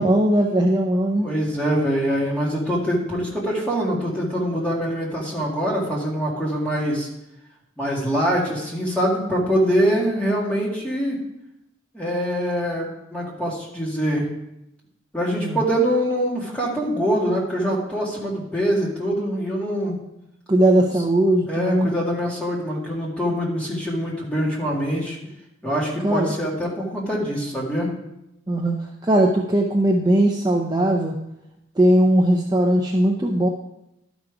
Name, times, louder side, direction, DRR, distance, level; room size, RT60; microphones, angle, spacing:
voice 1, 0.0-1.3 15.4-15.6 20.5-21.9 26.0-26.3 28.5-28.7 29.0-31.2 31.8-33.5, right 1 dB, 20° right, 0 dB, 0.6 m, -19 dB
voice 2, 1.2-7.1 7.8-11.2 11.9-14.3 15.1-19.9 21.5-25.2 25.6-27.9, equal, 5° left, -5 dB, 2.0 m, -24 dB
12.0 x 5.2 x 4.7 m, 0.86 s
head